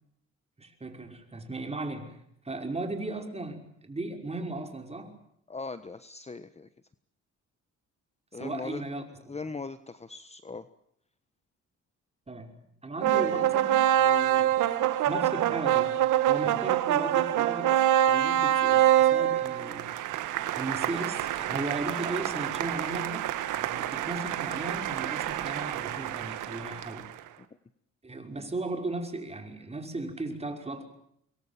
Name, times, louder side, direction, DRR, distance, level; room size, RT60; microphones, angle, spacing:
voice 1, 0.6-5.2 8.3-9.0 12.3-16.0 16.3-19.9 20.5-27.1 28.0-30.8, right 2 dB, 20° right, 5 dB, 5.7 m, -37 dB
voice 2, 5.5-6.7 8.3-8.8 9.3-10.7 13.1-13.5 16.5-16.6, left 4 dB, 20° left, 12 dB, 1.3 m, -39 dB
sound 1, 13.0-27.2, right 12 dB, 90° right, 2.0 m, -26 dB
26.0 x 23.0 x 7.4 m, 0.71 s
cardioid pair, 90°, 30 cm